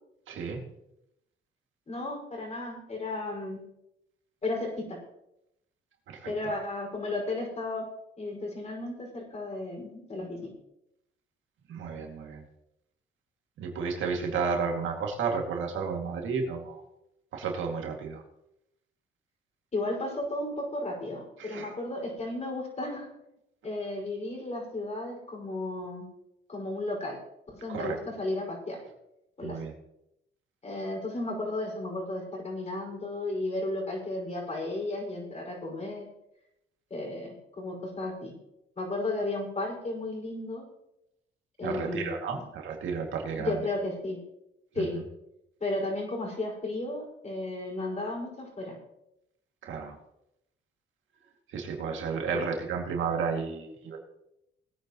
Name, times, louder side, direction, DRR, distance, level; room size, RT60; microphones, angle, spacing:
voice 1, 0.3-0.6 6.1-6.3 11.7-12.4 13.6-16.8 17.3-18.2 21.4-21.7 27.7-28.0 29.4-29.7 41.6-43.6 44.8-45.0 49.6-50.0 51.5-54.0, right 5 dB, 75° right, 1 dB, 2.4 m, -32 dB
voice 2, 1.9-3.6 4.4-5.0 6.2-7.9 8.2-10.5 19.7-23.1 23.6-26.1 26.5-27.2 27.5-28.8 29.4-29.6 30.6-36.1 36.9-38.3 38.8-40.6 41.6-42.4 43.4-44.2 44.7-44.9 45.6-48.8 52.3-52.4, left 2 dB, 35° left, 0 dB, 5.5 m, -34 dB
20.0 x 9.4 x 3.1 m, 0.83 s
cardioid pair, 90°, 20 cm